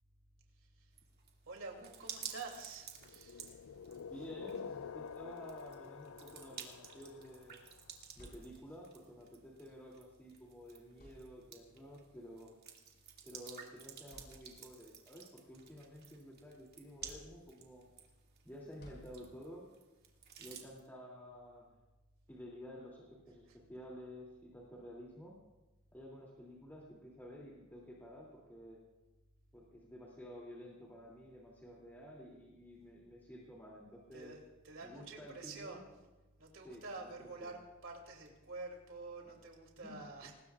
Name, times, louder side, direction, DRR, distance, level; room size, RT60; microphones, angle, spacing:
voice 1, 0.6-0.9 1.5-3.6 23.5-23.6 34.1-35.9 36.4-40.3, right 3 dB, 70° right, 1 dB, 2.7 m, -48 dB
sound 1, 1.0-20.9, right 7 dB, 50° right, 2.3 m, -53 dB
sound 2, 3.0-7.9, left 6 dB, 80° left, 0.4 m, -48 dB
voice 2, 4.0-7.6 8.2-12.5 13.2-17.9 18.4-19.7 20.4-21.7 22.3-25.4 25.9-28.8 29.5-34.4 34.8-35.8 36.6-37.1 37.4-37.5 39.8-40.3, equal, 10° left, -4 dB, 2.7 m, -52 dB
sound 3, 7.8-9.0 10.2-10.4 10.9-11.7 12.8-13.0 13.5-13.6 14.1-14.9 15.4-16.4 17.0-17.8 18.8-19.7, left 1 dB, 50° left, 5.6 m, -59 dB
25.0 x 20.0 x 2.4 m, 1.1 s
head